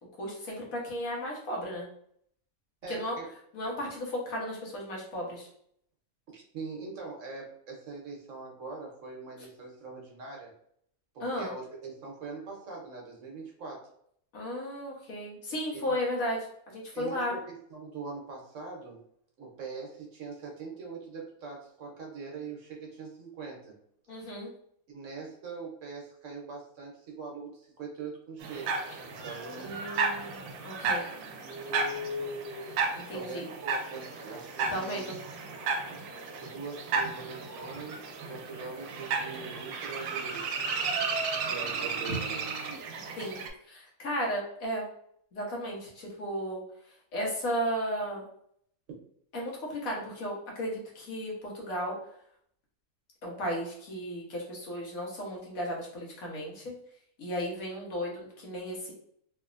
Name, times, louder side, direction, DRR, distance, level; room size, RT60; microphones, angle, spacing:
voice 1, 0.2-1.9 2.9-3.2 3.5-5.5 11.2-11.5 14.3-17.4 24.1-24.5 29.5-31.1 33.0-33.5 34.7-35.2 42.1-42.2 43.2-43.4 43.7-44.9 45.3-46.6 47.1-48.2 49.3-52.0 53.2-56.7 57.2-58.9, equal, 75° left, -3 dB, 1.4 m, -34 dB
voice 2, 2.8-3.3 6.3-10.5 11.1-13.9 15.7-15.9 16.9-19.0 19.4-23.8 24.9-28.7 29.0-29.7 33.0-35.1 35.9-36.0 36.4-40.8 41.5-42.4, right 4 dB, 65° right, -1 dB, 1.1 m, -42 dB
sound 1, 28.4-43.5, right 4 dB, 90° right, 1.1 m, -34 dB
3.2 x 2.7 x 2.4 m, 0.67 s
omnidirectional pair, 1.5 m